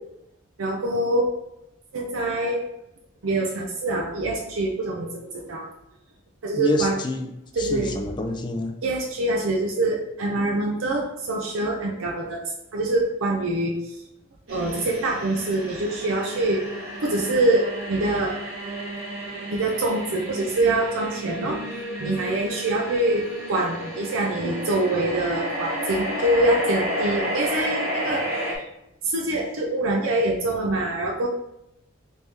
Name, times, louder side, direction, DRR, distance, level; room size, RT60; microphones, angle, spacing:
voice 1, 0.6-1.3 1.9-2.7 3.2-5.7 6.4-7.0 7.5-8.0 8.8-12.4 12.7-14.0 14.5-16.6 17.0-18.4 19.5-28.7 29.0-31.3, right 2 dB, 85° right, -1 dB, 0.5 m, -25 dB
voice 2, 6.6-7.3 7.6-8.7, left 2 dB, 20° left, 4 dB, 0.3 m, -27 dB
sound 1, 14.5-28.6, equal, 65° right, 1.0 m, -32 dB
3.3 x 3.2 x 2.7 m, 0.83 s
head